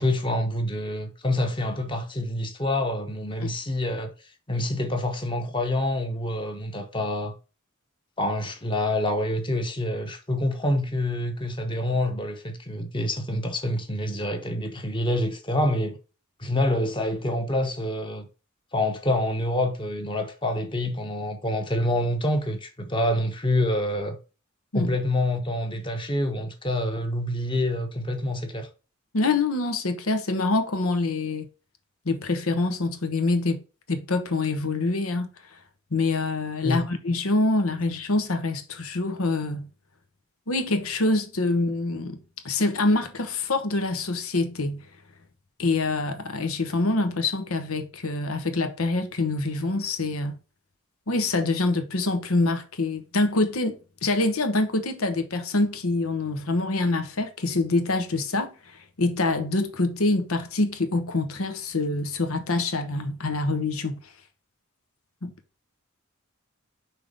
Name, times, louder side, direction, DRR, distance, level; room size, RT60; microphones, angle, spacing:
voice 1, 0.0-4.1 4.5-7.3 8.2-16.0 16.4-18.3 18.7-24.2 24.7-28.7 36.6-36.8, left 1 dB, 25° left, 1.1 m, -27 dB
voice 2, 29.1-31.5 32.0-33.6 33.9-35.3 35.9-39.7 40.5-42.2 42.4-44.9 45.6-50.4 51.1-64.0 65.2-65.3, left 2 dB, 90° left, 1.2 m, -25 dB
5.8 x 3.7 x 5.2 m
head